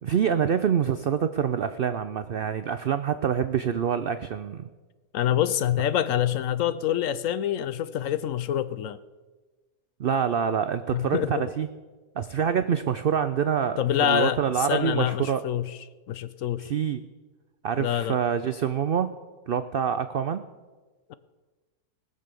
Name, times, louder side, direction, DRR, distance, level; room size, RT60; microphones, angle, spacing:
voice 1, 0.0-4.7 10.0-11.7 12.2-15.4 16.6-17.0 17.6-19.1 19.5-20.4, right 8 dB, 90° right, 11 dB, 0.5 m, -26 dB
voice 2, 5.1-9.0 10.9-11.4 13.8-15.8 16.1-16.7 17.8-18.2 21.1-21.2, left 10 dB, 70° left, 15 dB, 0.9 m, -26 dB
19.5 x 6.8 x 6.8 m, 1.3 s
omnidirectional pair, 1.6 m